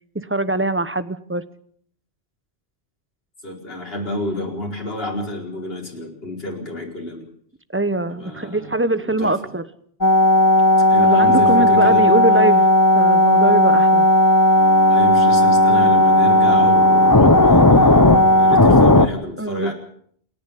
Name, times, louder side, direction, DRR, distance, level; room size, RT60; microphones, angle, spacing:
voice 1, 0.1-1.4 7.7-9.6 11.0-12.7 12.9-14.0 19.4-19.7, right 2 dB, 10° right, 13 dB, 1.0 m, -22 dB
voice 2, 3.4-7.3 8.1-8.7 9.1-9.3 10.9-12.1 14.9-19.7, left 1 dB, 60° left, -1 dB, 5.0 m, -29 dB
sound 1, 10.0-19.1, left 1 dB, 20° left, 1.0 m, -14 dB
28.0 x 10.5 x 10.0 m, 0.63 s
omnidirectional pair, 1.1 m